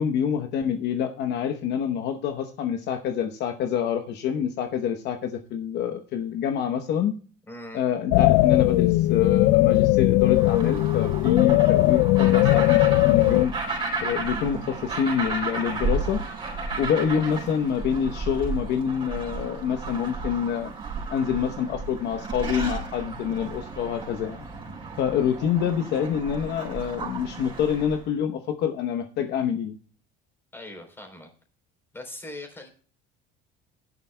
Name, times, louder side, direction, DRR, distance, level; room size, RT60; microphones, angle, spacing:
voice 1, 0.0-7.1 7.7-13.5 14.0-16.2 16.8-20.7 21.1-24.5 25.0-29.8, left 8 dB, 55° left, 6 dB, 1.0 m, -26 dB
voice 2, 7.5-7.8 30.5-31.3 31.9-32.7, left 1 dB, 10° left, 3 dB, 3.6 m, -40 dB
sound 1, 8.1-13.5, left 18 dB, 80° left, 0.4 m, -19 dB
sound 2, 10.3-28.0, right 3 dB, 25° right, 4.2 m, -33 dB
16.0 x 11.0 x 2.2 m, 0.42 s
cardioid pair, 140°, 21 cm